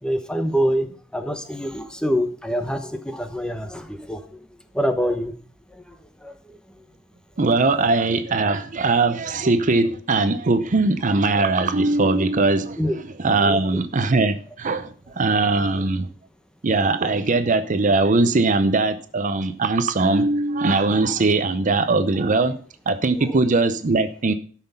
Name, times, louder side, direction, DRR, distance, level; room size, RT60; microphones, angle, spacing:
voice 1, 0.0-0.9 1.1-4.4 4.7-5.3 5.9-6.0 6.2-6.3 12.8-12.9 13.4-13.6 23.2-23.4, equal, 5° left, 8 dB, 1.0 m, -25 dB
voice 2, 7.4-16.1 16.6-22.6 22.9-24.3, right 3 dB, 40° right, 11 dB, 0.6 m, -20 dB
13.0 x 5.9 x 5.5 m, 0.43 s
head